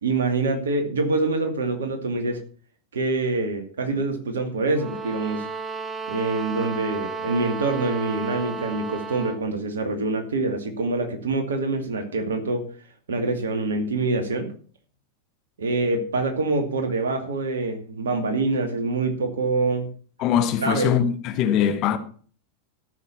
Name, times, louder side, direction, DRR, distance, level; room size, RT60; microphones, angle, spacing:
voice 1, 0.0-2.4 2.9-5.5 6.1-12.7 13.1-14.5 15.6-19.9 20.6-21.0, right 3 dB, 65° right, 2.4 m, -25 dB
sound 1, 4.7-9.5, right 4 dB, 20° right, 0.9 m, -33 dB
voice 2, 20.2-22.0, left 9 dB, 40° left, 1.4 m, -22 dB
14.0 x 6.7 x 5.9 m
figure-of-eight pair, 90°, 0 cm